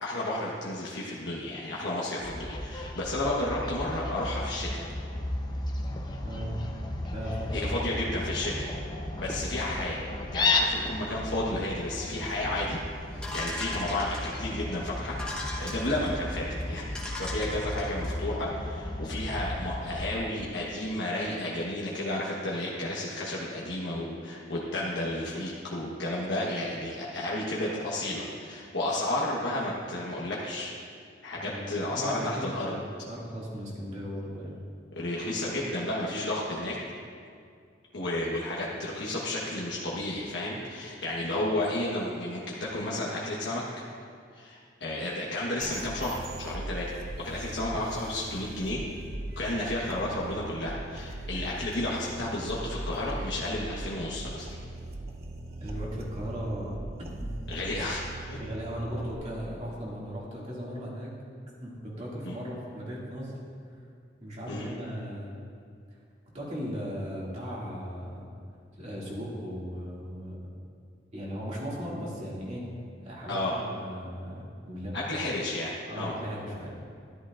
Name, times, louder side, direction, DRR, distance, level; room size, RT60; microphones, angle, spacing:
voice 1, 0.0-4.9 7.5-8.7 9.2-10.1 10.3-12.8 13.1-16.8 17.2-30.7 31.2-32.7 34.9-36.8 37.9-43.6 44.3-47.0 47.2-48.8 49.4-54.5 57.5-58.4 62.2-62.3 64.5-64.7 73.3-73.6 74.9-76.1, left 1 dB, 70° left, -5 dB, 1.2 m, -32 dB
Fowl, 2.2-20.1, left 2 dB, 25° left, 0.7 m, -34 dB
voice 2, 6.2-6.6 7.1-8.0 9.3-9.5 31.4-34.6 55.6-56.7 57.2-57.3 58.4-61.1 61.6-63.3 64.2-65.4 66.3-68.2 68.8-70.4 71.1-72.7 73.0-75.0 75.8-76.7, equal, 40° right, -5 dB, 2.4 m, -37 dB
sound 1, 13.2-14.5 15.1-16.1 16.6-16.7 16.9-18.2, left 2 dB, 5° left, 1.2 m, -38 dB
sound 2, 45.6-59.1, right 2 dB, 55° right, 0.8 m, -39 dB
13.0 x 11.0 x 2.5 m, 2.2 s
head